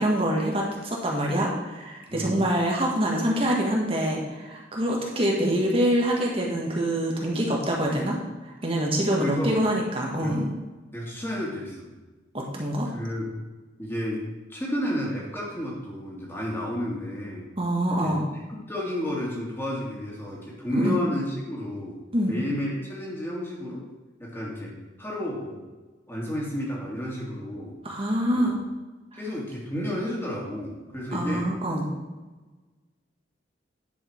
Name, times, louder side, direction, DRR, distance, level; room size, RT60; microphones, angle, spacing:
voice 1, 0.0-8.2 8.4-10.5 12.3-12.9 17.6-18.2 20.7-21.0 22.1-22.3 27.8-28.6 31.1-31.9, right 1 dB, 30° right, -2 dB, 1.7 m, -25 dB
voice 2, 2.1-2.4 9.1-9.6 10.2-10.3 10.9-11.9 12.8-13.3 13.8-14.2 14.5-17.5 17.9-18.2 18.7-22.0 22.2-23.8 24.2-25.7 26.1-27.8 28.3-28.5 29.2-31.5, left 1 dB, 15° left, -4 dB, 2.5 m, -31 dB
10.0 x 6.5 x 4.6 m, 1.2 s
head